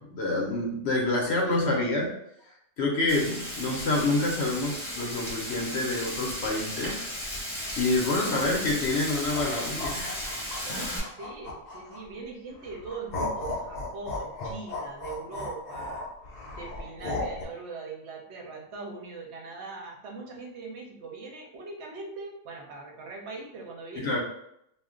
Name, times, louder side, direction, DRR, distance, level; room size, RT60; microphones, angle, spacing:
voice 1, 0.0-2.2 2.8-7.1 7.8-10.2 10.7-10.8 23.9-24.2, left 2 dB, 60° left, -1 dB, 0.7 m, -27 dB
Frying (food), 3.1-11.0, equal, 25° left, 0.9 m, -35 dB
sound 1, 9.1-12.2 12.6-17.4, left 2 dB, 85° left, 0.3 m, -35 dB
voice 2, 11.2-16.1 16.5-24.2, right 3 dB, 60° right, -1 dB, 0.8 m, -41 dB
2.4 x 2.2 x 3.6 m, 0.76 s
omnidirectional pair, 1.5 m